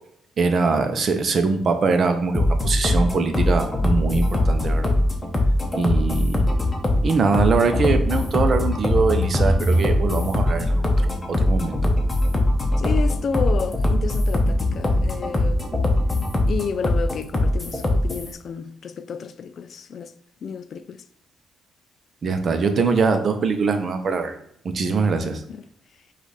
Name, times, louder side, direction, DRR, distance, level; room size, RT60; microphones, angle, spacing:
voice 1, 0.4-4.9 5.8-6.4 7.0-11.8 22.2-24.3 24.6-25.4, right 4 dB, 50° right, 0.6 m, -22 dB
sound 1, 2.3-18.3, left 1 dB, 20° left, 0.8 m, -21 dB
voice 2, 12.8-15.7 16.5-20.1 20.4-21.0 25.5-25.6, left 6 dB, 55° left, 0.3 m, -31 dB
5.1 x 2.4 x 3.9 m
cardioid pair, 90°, 0 cm